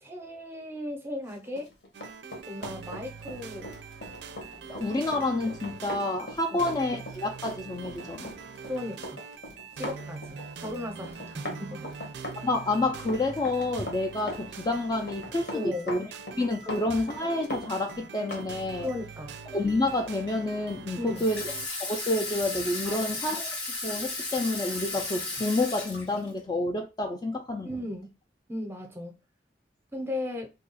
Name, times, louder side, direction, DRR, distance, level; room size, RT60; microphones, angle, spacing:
voice 1, 0.0-1.7 2.5-3.7 6.5-6.6 8.6-9.2 9.8-12.0 15.5-15.9 16.7-16.9 18.8-19.4 21.0-21.3 22.8-23.1 27.6-28.1 28.5-29.2 29.9-30.5, left 1 dB, 15° right, 0.6 m, -36 dB
Run, 1.5-18.5 18.8-19.0, left 1 dB, 75° left, 1.1 m, -40 dB
sound 1, 1.9-21.7, right 6 dB, 75° right, 0.4 m, -43 dB
voice 2, 4.7-8.3 12.4-16.1 16.4-18.9 19.5-21.4 21.8-23.5 23.8-27.7, left 2 dB, 25° left, 0.3 m, -29 dB
Water tap faucet / Sink (filling or washing), 21.2-26.4, left 2 dB, 90° left, 1.6 m, -34 dB
2.7 x 2.3 x 3.9 m
head